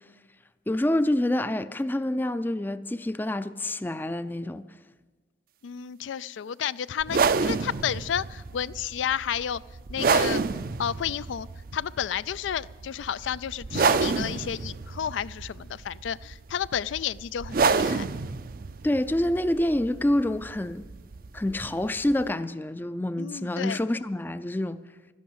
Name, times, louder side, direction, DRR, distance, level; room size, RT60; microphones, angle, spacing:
voice 1, 0.7-4.6 18.8-20.8 21.3-24.8, left 1 dB, 10° left, 0.4 m, -27 dB
voice 2, 5.6-9.6 9.9-10.4 10.8-11.5 11.7-18.1 23.2-23.8, left 8 dB, 85° left, 0.3 m, -31 dB
sound 1, 7.0-22.3, right 4 dB, 50° right, 0.5 m, -29 dB
12.5 x 11.5 x 8.6 m
head